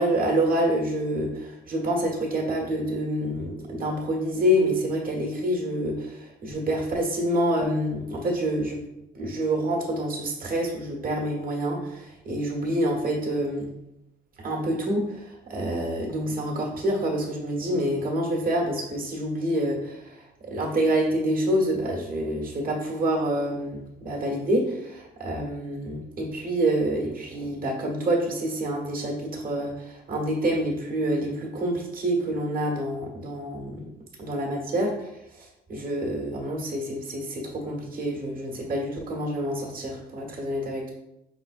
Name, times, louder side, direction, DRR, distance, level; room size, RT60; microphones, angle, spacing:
voice 1, 0.0-8.8 9.1-13.7 14.4-33.8 34.2-40.9, right 1 dB, 45° right, -1 dB, 1.5 m, -27 dB
4.8 x 3.7 x 2.6 m, 0.88 s
cardioid pair, 90°, 20 cm